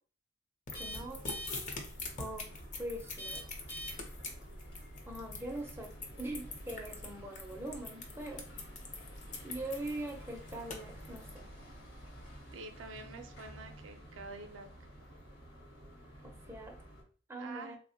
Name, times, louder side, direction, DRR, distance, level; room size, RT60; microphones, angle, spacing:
sound 1, 0.7-12.3, equal, 80° left, 0.6 m, -53 dB
sound 2, 0.7-17.0, equal, 55° left, 1.0 m, -50 dB
sound 3, 0.7-11.3, left 3 dB, 40° left, 0.5 m, -43 dB
voice 1, 0.8-1.3 2.2-2.5 2.8-3.5 5.1-8.5 9.4-11.5 16.2-16.8 17.3-17.8, right 1 dB, 15° right, 2 dB, 0.4 m, -42 dB
voice 2, 12.5-14.7 17.4-17.8, right 3 dB, 75° right, 6 dB, 0.4 m, -47 dB
3.4 x 2.0 x 2.6 m, 0.42 s
head